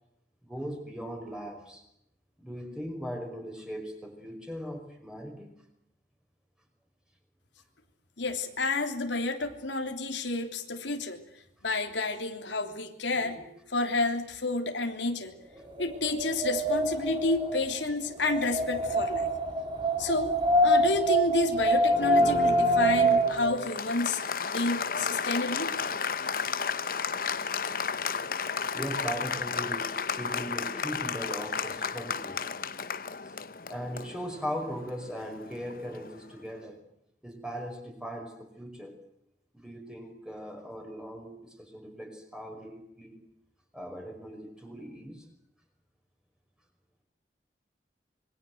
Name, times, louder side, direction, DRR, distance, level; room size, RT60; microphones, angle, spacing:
voice 1, 0.4-1.8 2.4-5.6 13.1-13.5 28.7-32.5 33.2-33.4 33.7-36.8 37.2-39.0 39.5-43.2 43.7-45.3, equal, 5° right, 3 dB, 5.2 m, -39 dB
voice 2, 8.2-11.2 11.6-13.4 13.7-15.3 15.8-19.3 20.0-20.4 20.6-25.7, left 2 dB, 85° left, 4 dB, 3.3 m, -30 dB
Wind, 15.6-23.6, right 1 dB, 25° right, 3.8 m, -26 dB
Applause, 21.9-36.3, left 5 dB, 50° left, 0.9 m, -33 dB
26.0 x 23.5 x 7.9 m, 0.79 s
head